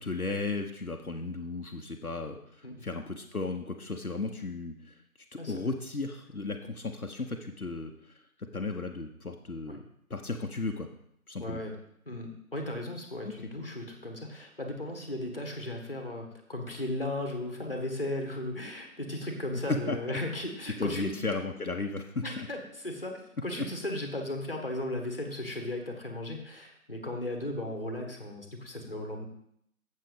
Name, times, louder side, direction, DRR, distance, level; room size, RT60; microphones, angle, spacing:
voice 1, 0.0-5.0 5.5-10.9 11.3-11.6 13.2-13.4 19.9-20.2 20.8-22.5, left 3 dB, 75° left, 3 dB, 1.1 m, -35 dB
voice 2, 11.4-11.7 12.1-21.1 22.2-29.2, left 1 dB, 40° left, 3 dB, 1.5 m, -36 dB
7.5 x 6.9 x 5.1 m, 0.72 s
figure-of-eight pair, 170°, 44 cm